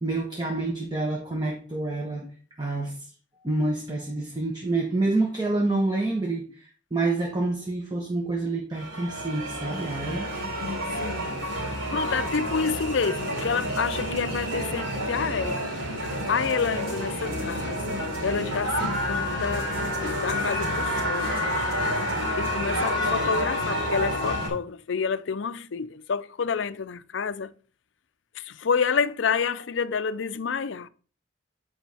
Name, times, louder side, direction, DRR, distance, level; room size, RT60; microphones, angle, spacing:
voice 1, 0.0-2.3 2.6-3.0 3.4-10.3, right 2 dB, 20° right, 1.0 m, -28 dB
sound 1, 8.7-24.5, equal, 85° right, 3.5 m, -29 dB
voice 2, 10.9-11.3 11.9-15.7 16.3-19.7 20.0-21.4 22.4-27.5 28.4-30.9, left 5 dB, 75° left, 0.5 m, -28 dB
Bowed string instrument, 19.5-24.0, left 2 dB, 50° right, 1.6 m, -44 dB
9.0 x 5.1 x 3.4 m
head